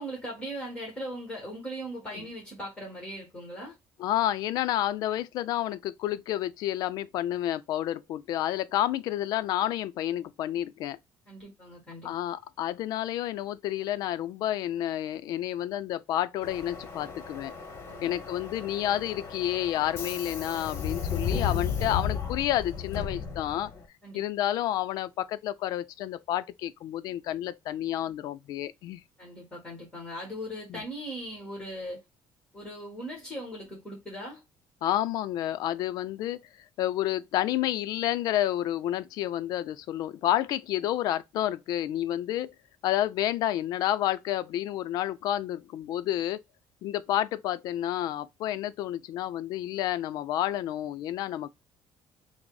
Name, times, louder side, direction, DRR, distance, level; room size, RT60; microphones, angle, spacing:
voice 1, 0.0-3.8 11.3-12.1 17.9-18.1 24.0-24.2 29.2-32.0 32.5-34.4, equal, 10° left, 1.4 m, -39 dB
voice 2, 4.0-11.0 12.0-17.5 18.0-23.7 24.1-29.0 30.7-30.8 34.8-36.5 36.8-42.5 42.8-46.4 46.8-51.5, left 12 dB, 65° left, 0.4 m, -30 dB
Subway metro underground, 16.4-23.8, left 6 dB, 35° left, 1.1 m, -34 dB
6.0 x 2.0 x 2.3 m
cardioid pair, 165°, 7 cm